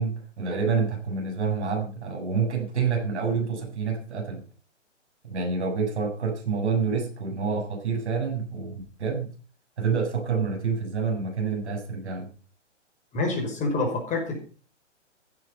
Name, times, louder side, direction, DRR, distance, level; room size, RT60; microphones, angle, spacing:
voice 1, 0.0-4.4 5.2-9.3 9.8-12.3, right 5 dB, 65° right, 3 dB, 7.5 m, -28 dB
voice 2, 13.1-14.4, left 3 dB, 20° left, 3 dB, 5.5 m, -27 dB
16.0 x 9.8 x 5.7 m, 0.38 s
figure-of-eight pair, 125°, 36 cm